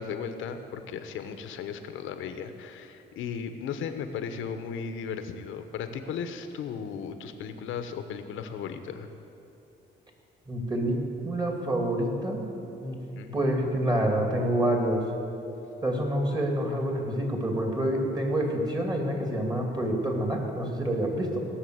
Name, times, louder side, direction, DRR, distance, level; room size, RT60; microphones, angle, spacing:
voice 1, 0.0-9.1 13.1-13.4, left 6 dB, 85° left, 8 dB, 1.0 m, -36 dB
voice 2, 10.5-11.0 11.2-12.5 12.8-13.0 13.3-15.0 15.8-21.4, right 1 dB, 20° right, 1 dB, 2.7 m, -27 dB
17.5 x 6.4 x 7.9 m, 2.8 s
cardioid pair, 90°, 20 cm